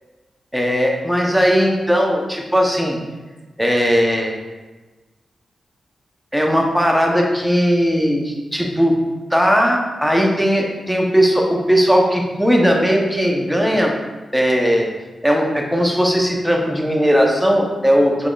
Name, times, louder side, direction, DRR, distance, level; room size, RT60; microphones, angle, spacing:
voice 1, 0.5-3.0 3.6-4.4 6.3-8.9 9.3-13.9 14.3-14.9 15.2-18.3, equal, ahead, 0 dB, 0.9 m, -17 dB
5.1 x 3.7 x 2.4 m, 1.2 s
supercardioid pair, 45°, 0 cm